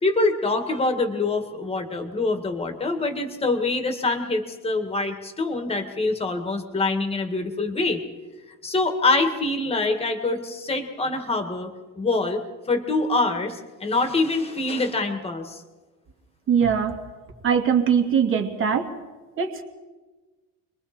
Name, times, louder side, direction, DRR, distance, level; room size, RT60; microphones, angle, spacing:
voice 1, 0.0-8.0 8.6-11.7 12.0-12.4 12.7-15.6, left 3 dB, 15° left, 6 dB, 2.1 m, -25 dB
voice 2, 16.5-17.0 17.4-18.9 19.4-19.6, right 7 dB, 35° right, 3 dB, 2.5 m, -21 dB
29.5 x 22.5 x 4.4 m, 1.3 s
cardioid pair, 160°, 36 cm